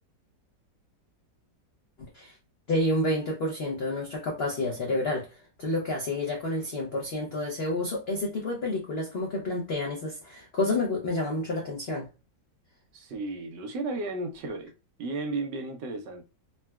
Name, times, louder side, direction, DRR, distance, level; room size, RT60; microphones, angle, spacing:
voice 1, 2.7-5.3 5.6-12.1, left 2 dB, 70° left, 0.5 m, -29 dB
voice 2, 12.9-14.7 15.0-16.3, right 2 dB, 75° right, 1.3 m, -34 dB
3.8 x 2.1 x 2.2 m
omnidirectional pair, 1.9 m